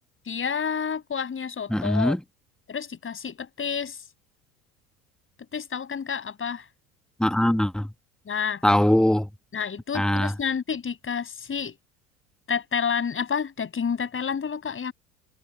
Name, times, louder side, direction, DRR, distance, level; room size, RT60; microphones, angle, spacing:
voice 1, 0.3-2.2 2.7-4.0 5.5-6.6 8.3-8.6 9.5-11.8 12.5-14.9, left 6 dB, 25° left, 6.9 m, -29 dB
voice 2, 1.7-2.2 7.2-7.9 8.6-9.3 9.9-10.3, left 1 dB, ahead, 1.4 m, -21 dB
hypercardioid pair, 75°, 45 cm